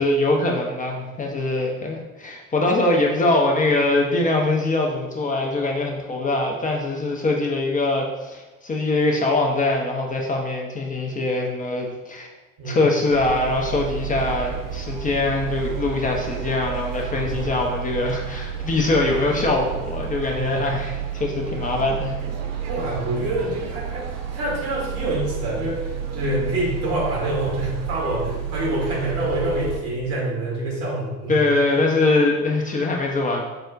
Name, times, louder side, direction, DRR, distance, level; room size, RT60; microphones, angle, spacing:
voice 1, 0.0-12.3 12.7-22.2 31.3-33.4, left 2 dB, 20° left, 0 dB, 0.5 m, -22 dB
voice 2, 12.6-12.9 17.2-17.3 20.3-20.6 22.7-31.4, right 1 dB, 70° right, -5 dB, 1.2 m, -26 dB
sound 1, 13.1-29.8, right 8 dB, 45° right, 0.5 m, -31 dB
4.5 x 2.1 x 2.5 m, 1.1 s
figure-of-eight pair, 45°, 38 cm